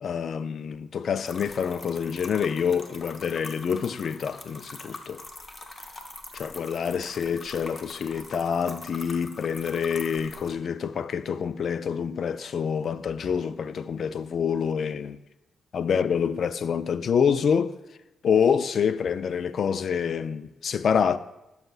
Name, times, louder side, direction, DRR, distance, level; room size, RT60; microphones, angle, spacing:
voice 1, 0.0-5.2 6.3-15.2 15.7-17.8 18.2-21.2, left 7 dB, 65° left, 0.3 m, -27 dB
sound 1, 1.2-10.5, left 2 dB, 40° left, 0.9 m, -43 dB
11.5 x 5.6 x 2.4 m
supercardioid pair, 60°, 0 cm